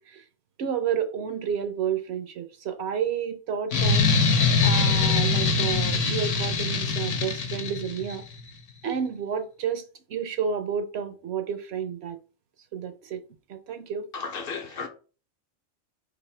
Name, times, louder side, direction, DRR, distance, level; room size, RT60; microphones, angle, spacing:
voice 1, 0.6-4.0 4.6-8.2 8.8-9.8 10.1-12.2 12.7-13.2 13.5-14.1, right 7 dB, 65° right, 0.8 m, -30 dB
sound 1, 3.7-8.2, left 4 dB, 80° left, 1.1 m, -23 dB
voice 2, 14.1-14.9, left 5 dB, 55° left, 0.9 m, -34 dB
4.1 x 2.5 x 4.2 m
omnidirectional pair, 1.3 m